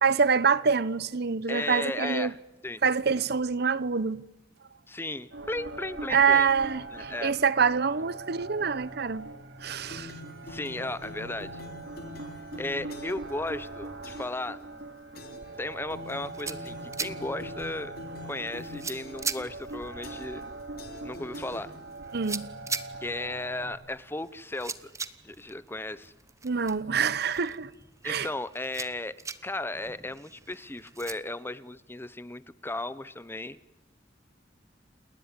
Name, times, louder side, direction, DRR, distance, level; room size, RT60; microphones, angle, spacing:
voice 1, 0.0-2.3 2.8-4.2 6.1-9.3 9.6-10.1 22.1-22.5 26.4-27.7 28.0-28.3, right 5 dB, 60° right, 0.9 m, -26 dB
voice 2, 1.5-2.4 2.6-2.8 4.9-6.5 6.9-7.3 10.4-11.6 12.6-14.6 15.6-18.0 18.3-20.4 21.0-21.7 23.0-24.9 25.2-26.1 28.0-29.2 29.4-33.6, left 2 dB, 15° left, 0.9 m, -35 dB
sound 1, 5.3-23.8, right 2 dB, 85° right, 3.0 m, -42 dB
sound 2, 9.9-13.3 14.0-14.4 15.2-15.6 15.9-19.4 20.0-20.5 20.8-22.1, left 2 dB, 55° left, 3.7 m, -45 dB
sound 3, 16.0-31.1, right 4 dB, 15° right, 1.1 m, -42 dB
29.0 x 20.0 x 9.7 m
head